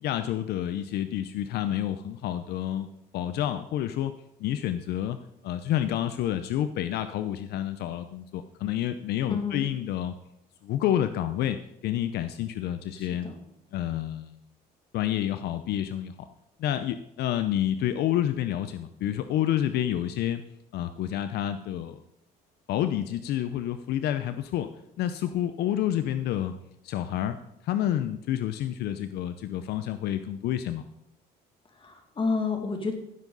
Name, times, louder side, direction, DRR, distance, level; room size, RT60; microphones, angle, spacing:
voice 1, 0.0-2.9 3.1-4.1 4.4-5.2 5.4-10.1 10.6-13.3 13.7-14.4 14.9-16.3 16.6-20.4 20.7-22.0 22.7-24.7 25.0-26.5 26.8-27.4 27.6-30.8, left 11 dB, 75° left, 10 dB, 0.6 m, -29 dB
voice 2, 9.3-9.6 12.9-13.3 31.8-33.0, left 4 dB, 30° left, 4 dB, 2.3 m, -30 dB
15.0 x 7.4 x 4.0 m, 0.80 s
cardioid pair, 110°, 17 cm